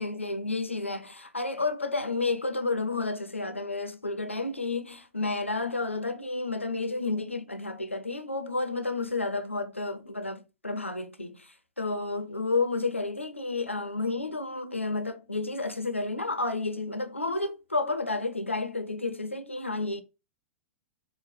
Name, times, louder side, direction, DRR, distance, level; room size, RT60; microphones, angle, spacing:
voice 1, 0.0-11.5 11.8-20.0, left 3 dB, 85° left, 0.6 m, -31 dB
4.7 x 2.2 x 4.4 m
figure-of-eight pair, 100°, 7 cm